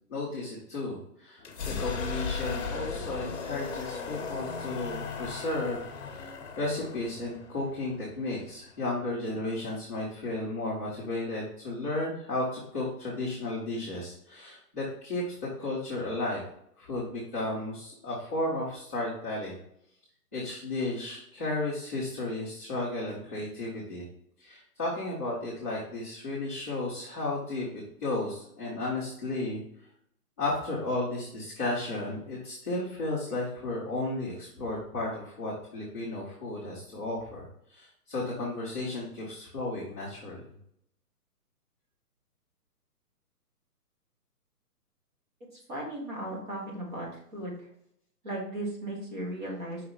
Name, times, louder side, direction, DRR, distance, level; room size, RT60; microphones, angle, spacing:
voice 1, 0.1-5.9 6.2-6.3 6.6-16.4 16.8-19.6 20.3-24.0 24.4-29.6 30.4-40.4, left 2 dB, 10° left, -15 dB, 0.7 m, -33 dB
sound 1, 1.4-9.1, left 5 dB, 45° left, 1.2 m, -37 dB
voice 2, 45.7-47.5 48.2-49.9, right 1 dB, 30° right, -4 dB, 2.1 m, -36 dB
5.6 x 4.9 x 4.3 m, 0.73 s
hypercardioid pair, 170°, 47 cm